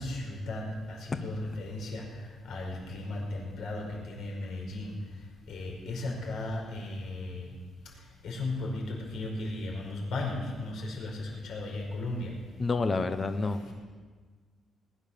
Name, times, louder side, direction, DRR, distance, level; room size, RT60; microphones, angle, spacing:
voice 1, 0.0-2.1 2.5-5.0 5.5-7.5 8.2-12.3 13.4-13.7, left 2 dB, 70° left, 0 dB, 5.2 m, -36 dB
voice 2, 12.6-13.7, left 3 dB, 25° left, 9 dB, 0.9 m, -29 dB
20.5 x 9.8 x 6.9 m, 1.5 s
cardioid pair, 150°, 0 cm